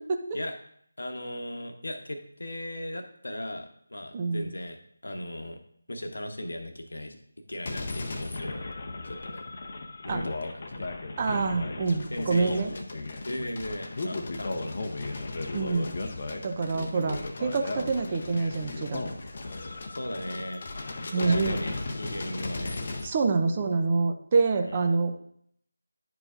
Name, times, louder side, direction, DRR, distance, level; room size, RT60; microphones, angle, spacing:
voice 1, 1.0-4.8 5.0-5.6 5.9-7.2 7.5-8.6 9.0-9.4 10.0-10.9 11.3-11.4 12.1-15.2 15.7-15.9 19.9-20.6 21.0-22.8 24.6-25.0, left 1 dB, 65° left, 6 dB, 1.0 m, -37 dB
voice 2, 4.1-4.5 10.1-10.3 11.2-12.7 15.5-15.9 16.4-19.0 21.1-21.6 23.0-25.2, right 4 dB, 25° right, 4 dB, 0.5 m, -26 dB
sound 1, 7.7-23.1, left 2 dB, 40° left, 0.7 m, -36 dB
10.5 x 4.8 x 2.5 m, 0.66 s
figure-of-eight pair, 160°, 0 cm